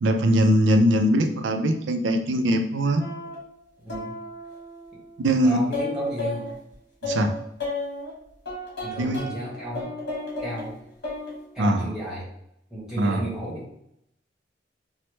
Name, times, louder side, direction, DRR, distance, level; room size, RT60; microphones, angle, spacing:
voice 1, 0.0-3.0 5.2-5.6 7.0-7.3 9.0-9.2 11.6-11.9 13.0-13.2, equal, 75° right, 5 dB, 0.4 m, -21 dB
sound 1, 3.0-3.3 3.9-6.5 7.0-8.1 8.4-10.6 11.0-11.3 11.6-11.7, left 2 dB, 60° left, 1.3 m, -33 dB
voice 2, 5.4-6.5 8.8-9.9 10.4-10.7 11.5-12.3 12.7-13.7, equal, 5° right, -7 dB, 1.2 m, -33 dB
3.1 x 2.0 x 3.0 m, 0.76 s
head